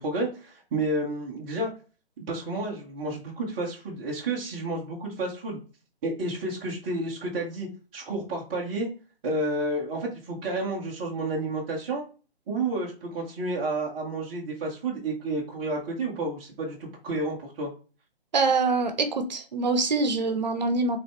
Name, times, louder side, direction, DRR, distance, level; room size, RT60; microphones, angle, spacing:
voice 1, 0.0-1.7 2.2-5.6 6.0-8.9 9.2-12.0 12.5-17.7, right 2 dB, 10° right, -4 dB, 0.6 m, -30 dB
voice 2, 18.3-21.0, right 3 dB, 45° right, 7 dB, 0.8 m, -24 dB
4.9 x 3.3 x 3.2 m, 0.36 s
figure-of-eight pair, 135°, 31 cm